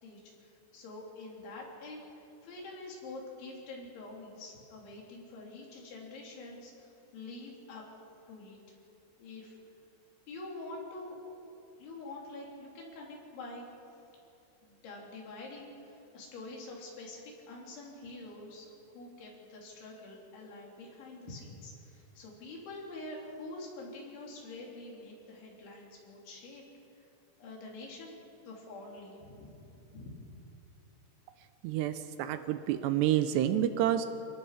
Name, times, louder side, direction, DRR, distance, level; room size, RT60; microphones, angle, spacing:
voice 1, 0.0-7.8 8.3-8.6 9.2-9.6 10.3-11.4 11.8-13.7 14.6-18.7 18.9-26.6 26.9-27.1 27.4-28.2 28.5-29.5 29.9-30.2, left 2 dB, 85° left, -2 dB, 5.7 m, -46 dB
voice 2, 31.6-34.1, right 11 dB, 80° right, 10 dB, 2.7 m, -29 dB
29.0 x 18.0 x 5.0 m, 2.8 s
omnidirectional pair, 5.2 m